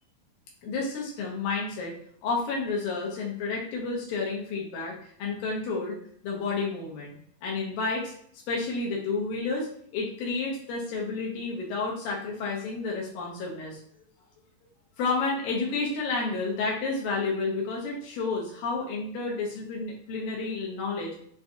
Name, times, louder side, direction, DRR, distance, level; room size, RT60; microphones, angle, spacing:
voice 1, 0.6-2.0 2.2-4.9 5.2-6.0 6.2-7.1 7.4-8.1 8.5-13.8 15.0-21.1, left 3 dB, 85° left, -3 dB, 2.6 m, -30 dB
6.2 x 2.6 x 2.4 m, 0.63 s
omnidirectional pair, 4.0 m